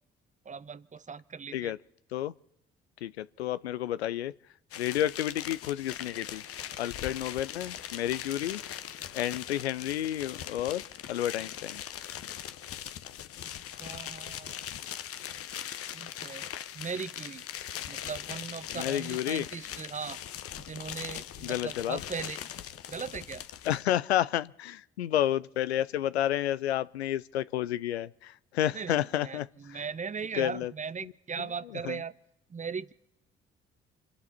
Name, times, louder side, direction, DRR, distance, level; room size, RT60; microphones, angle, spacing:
voice 1, 0.5-1.7 13.4-13.5 13.8-14.6 15.9-17.4 17.9-20.2 20.6-22.4 22.9-23.4 28.7-29.0 29.2-32.1 32.5-32.9, right 6 dB, 25° right, 0.8 m, -38 dB
voice 2, 3.0-4.3 4.8-6.4 6.8-8.6 9.1-10.8 11.1-11.8 18.7-19.5 21.4-22.0 23.7-29.8 30.3-30.7 31.0-31.1 31.4-32.0, left 12 dB, 80° left, 0.5 m, -31 dB
sound 1, 4.7-23.8, left 10 dB, 45° left, 0.9 m, -41 dB
28.5 x 11.0 x 4.2 m
figure-of-eight pair, 45°, 31 cm